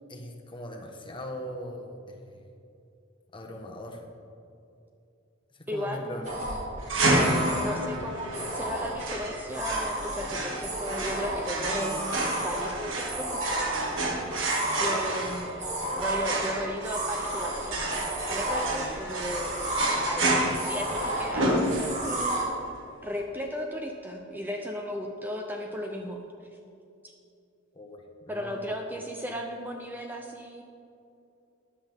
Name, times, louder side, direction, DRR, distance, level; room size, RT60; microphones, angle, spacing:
voice 1, 0.1-2.4 3.3-4.0 5.5-6.5 14.8-15.2 27.7-28.7, left 1 dB, 25° left, 1 dB, 1.3 m, -40 dB
voice 2, 5.7-6.7 7.6-13.5 13.9-14.0 14.8-19.6 20.0-22.6 23.0-26.2 28.3-30.6, equal, 10° right, 2 dB, 0.6 m, -35 dB
sound 1, 6.2-22.4, right 1 dB, 40° right, 2.5 m, -33 dB
sound 2, 6.9-22.2, right 1 dB, 80° right, 1.8 m, -30 dB
13.5 x 10.0 x 3.6 m, 2.6 s
head